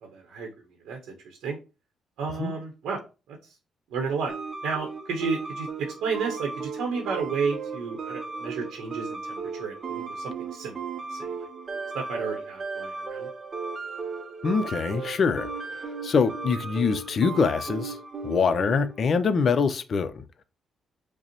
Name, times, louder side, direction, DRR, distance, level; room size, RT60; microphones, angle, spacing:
voice 1, 0.0-1.6 2.2-3.0 3.3-3.6 3.9-4.3 4.6-10.7 11.1-11.5 11.9-13.3, right 5 dB, 85° right, 0.7 m, -32 dB
sound 1, 4.3-19.0, right 4 dB, 40° right, 0.5 m, -36 dB
voice 2, 14.4-18.0 18.2-20.2, left 5 dB, 50° left, 0.4 m, -24 dB
5.0 x 2.0 x 2.9 m
cardioid pair, 90°, 0 cm